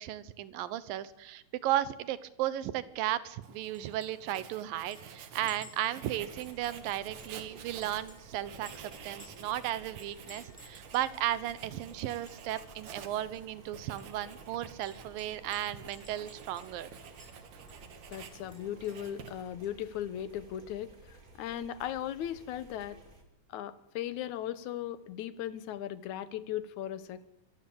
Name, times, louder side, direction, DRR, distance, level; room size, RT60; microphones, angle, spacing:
voice 1, 0.0-16.9, right 13 dB, 75° right, 16 dB, 2.7 m, -35 dB
Writing, 3.4-19.6, right 6 dB, 55° right, 2.9 m, -50 dB
Chink clink, 3.7-4.1 4.3-4.4 4.9-7.4 7.8-9.5 10.0-11.1 11.5-11.6 11.9-12.6 12.9-13.0 13.3-13.4 14.0-16.9 17.2-17.3 17.7-19.1, left 1 dB, 5° left, 5.0 m, -57 dB
sound 1, 6.1-23.2, right 2 dB, 25° right, 2.5 m, -56 dB
voice 2, 18.1-23.0 23.5-27.3, left 11 dB, 70° left, 15 dB, 2.1 m, -37 dB
25.0 x 15.0 x 8.6 m, 0.81 s
omnidirectional pair, 4.1 m